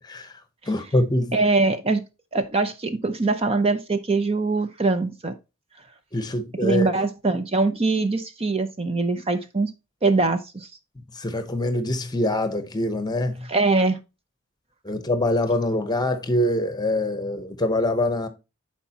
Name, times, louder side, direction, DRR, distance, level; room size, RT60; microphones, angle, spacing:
voice 1, 0.7-1.3 6.1-6.9 11.2-13.5 14.8-18.3, left 1 dB, 20° left, 1.0 m, -24 dB
voice 2, 1.3-2.0 2.3-5.3 6.6-9.7 10.0-10.7 13.5-14.0, right 3 dB, 30° right, 0.6 m, -22 dB
11.0 x 4.6 x 2.9 m
head